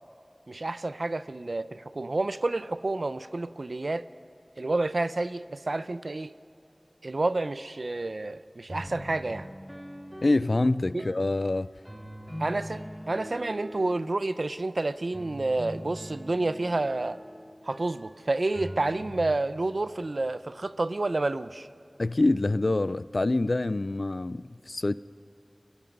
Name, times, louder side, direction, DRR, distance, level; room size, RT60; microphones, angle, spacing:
voice 1, 0.5-4.1 4.6-6.3 7.0-9.5 10.9-11.1 12.4-17.2 17.6-21.7, right 2 dB, 90° right, 0.6 m, -29 dB
sound 1, 8.7-11.3 11.9-14.5 15.1-19.2, equal, 10° right, 2.5 m, -42 dB
voice 2, 10.2-11.7 22.0-24.9, left 2 dB, 80° left, 0.4 m, -26 dB
30.0 x 22.0 x 5.4 m
wide cardioid pair, 40°, 0 cm